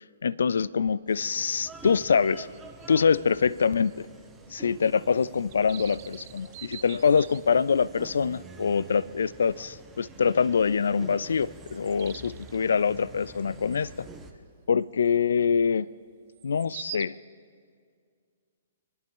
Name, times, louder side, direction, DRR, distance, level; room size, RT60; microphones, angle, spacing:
voice 1, 0.2-2.5 2.9-4.1 4.5-14.1 14.7-15.9 16.4-17.2, left 6 dB, 70° left, 21 dB, 0.3 m, -25 dB
sound 1, 1.1-14.3, right 3 dB, 10° right, 1.6 m, -47 dB
sound 2, 1.7-1.8 2.2-4.0 4.3-4.4 4.8-4.9 5.2-7.8 8.4-8.5 9.0-9.2 9.6-9.7 10.7-10.8 11.2-12.6 13.7-13.9 14.4-14.5 16.3-17.0, right 14 dB, 45° right, 0.5 m, -45 dB
27.0 x 11.0 x 3.7 m, 2.1 s
figure-of-eight pair, 120°, 0 cm